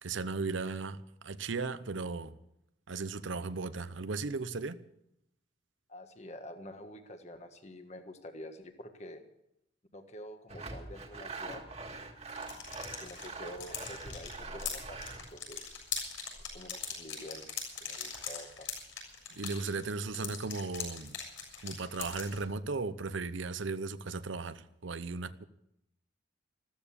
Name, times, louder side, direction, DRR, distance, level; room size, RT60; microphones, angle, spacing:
voice 1, 0.0-2.3 2.9-4.8 19.3-21.2 21.6-25.4, right 4 dB, 80° right, 0.8 m, -36 dB
voice 2, 5.9-9.2 9.9-11.6 13.0-15.0 15.3-15.8 16.5-17.5 17.8-18.7, left 1 dB, 35° left, 1.5 m, -47 dB
Sawing, 10.5-15.3, right 3 dB, 35° right, 1.9 m, -44 dB
sound 1, 12.3-22.4, left 6 dB, 90° left, 7.1 m, -41 dB
14.5 x 14.0 x 7.0 m
head